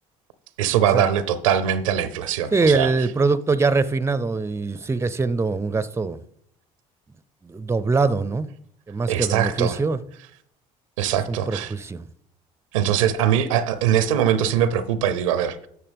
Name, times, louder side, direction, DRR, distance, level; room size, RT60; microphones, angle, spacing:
voice 1, 0.6-2.9 9.1-9.8 11.0-11.7 12.7-15.7, right 9 dB, 85° right, 0.6 m, -22 dB
voice 2, 2.5-6.2 7.4-8.5 8.9-10.0 11.3-12.1, right 4 dB, 15° right, 0.5 m, -23 dB
11.0 x 6.8 x 3.5 m
hypercardioid pair, 60°, 16 cm